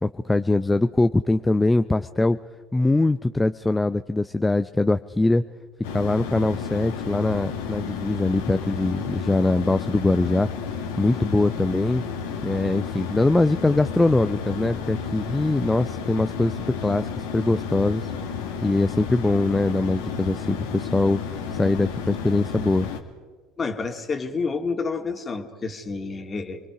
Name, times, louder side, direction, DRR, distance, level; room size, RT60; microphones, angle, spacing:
voice 1, 0.0-2.4 2.7-5.4 5.9-10.5 11.0-12.0 12.4-18.1 18.6-22.9, left 2 dB, 10° left, 10 dB, 0.6 m, -22 dB
sound 1, 5.8-23.0, left 6 dB, 75° left, 1.9 m, -32 dB
voice 2, 23.6-26.6, left 4 dB, 30° left, 5 dB, 2.3 m, -29 dB
29.0 x 22.0 x 5.0 m, 1.5 s
hypercardioid pair, 70°, 0 cm